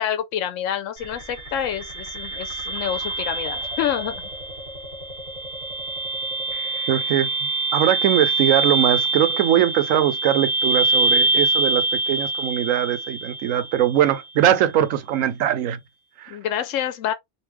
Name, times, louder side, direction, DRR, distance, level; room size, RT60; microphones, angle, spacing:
voice 1, 0.0-4.2 16.3-17.1, left 10 dB, 75° left, 1.0 m, -27 dB
sound 1, 1.0-14.0, right 3 dB, 40° right, 1.6 m, -25 dB
voice 2, 6.9-7.3 7.7-15.8 16.2-16.4, right 11 dB, 90° right, 1.0 m, -21 dB
3.3 x 2.7 x 3.0 m
omnidirectional pair, 1.3 m